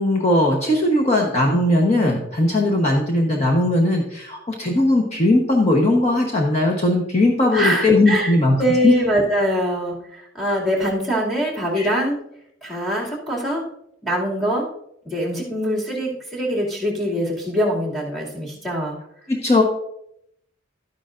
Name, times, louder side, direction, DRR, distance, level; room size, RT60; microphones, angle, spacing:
voice 1, 0.0-8.6 8.8-8.9 11.8-11.9 19.3-19.6, left 1 dB, 35° left, 0 dB, 1.1 m, -18 dB
voice 2, 7.5-12.2 12.6-13.6 14.0-14.7 15.0-19.0, equal, ahead, -3 dB, 2.5 m, -23 dB
12.5 x 9.9 x 2.6 m, 0.75 s
head